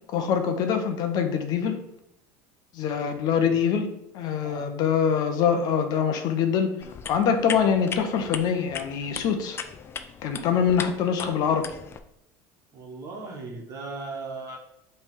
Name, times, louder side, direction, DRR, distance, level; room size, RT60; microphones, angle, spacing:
voice 1, 0.1-1.8 2.7-3.9 4.1-6.8 7.1-9.6 10.2-11.7, left 7 dB, 50° left, 6 dB, 0.8 m, -24 dB
sound 1, 6.8-12.0, left 6 dB, 30° left, 0.4 m, -38 dB
voice 2, 12.7-14.6, right 3 dB, 40° right, 2 dB, 1.4 m, -37 dB
7.9 x 3.3 x 3.7 m, 0.82 s
supercardioid pair, 130°, 8 cm